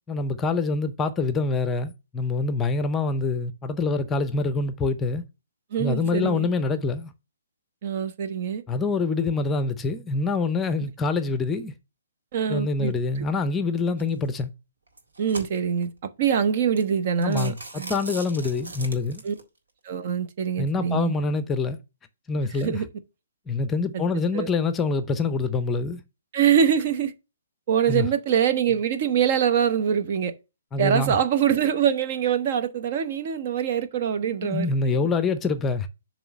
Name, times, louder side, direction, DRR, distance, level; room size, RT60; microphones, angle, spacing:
voice 1, 0.1-5.3 5.8-7.1 8.7-11.7 12.5-14.5 17.2-19.2 20.6-21.8 22.3-22.8 23.5-26.0 27.9-28.1 30.7-31.1 34.4-35.9, left 3 dB, 15° left, 0.6 m, -25 dB
voice 2, 5.7-6.5 7.8-8.6 12.3-12.9 15.2-15.9 16.2-17.9 19.2-19.3 19.8-21.1 22.6-22.9 23.9-24.0 24.3-24.5 26.3-27.1 27.7-30.3 30.8-35.0, right 8 dB, 45° right, 0.8 m, -24 dB
sound 1, 14.0-14.3 14.9-15.9 16.4-16.5 16.8-16.9 17.2-19.4, right 2 dB, 80° right, 1.8 m, -39 dB
7.0 x 3.2 x 5.8 m
hypercardioid pair, 135°, 0 cm